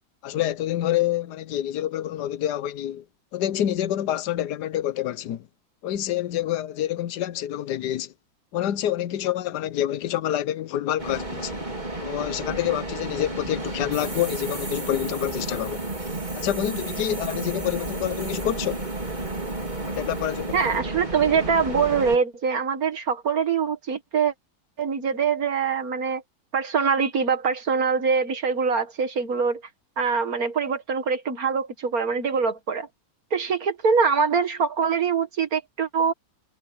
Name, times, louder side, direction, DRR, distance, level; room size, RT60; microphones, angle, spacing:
voice 1, 0.2-3.0 3.3-5.5 5.8-8.1 8.5-11.5 12.0-15.8 16.3-18.9 19.9-20.6, left 12 dB, 65° left, 1.3 m, -27 dB
sound 1, 11.0-22.2, right 2 dB, 25° right, 4.1 m, -32 dB
sound 2, 13.9-20.8, right 3 dB, 75° right, 7.7 m, -41 dB
voice 2, 20.5-24.3 24.8-26.2 26.5-29.6 30.0-32.9 33.3-36.1, right 5 dB, 50° right, 2.0 m, -24 dB
omnidirectional pair, 2.0 m